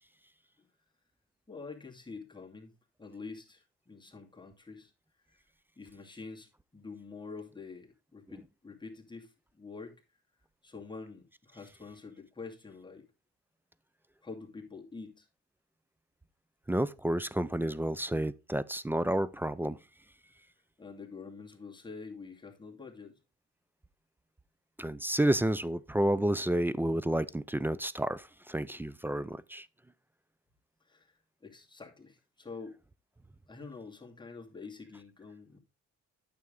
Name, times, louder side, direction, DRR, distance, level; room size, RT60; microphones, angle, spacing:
voice 1, 1.5-4.9 5.3-5.4 5.8-9.9 10.6-13.1 14.2-15.3 20.8-23.2 30.9-31.1 31.4-32.7 33.5-35.6, left 4 dB, 15° left, 2.3 m, -47 dB
voice 2, 16.7-19.8 24.8-29.7, right 1 dB, 5° right, 0.4 m, -30 dB
9.3 x 6.9 x 3.7 m
cardioid pair, 90°, 30 cm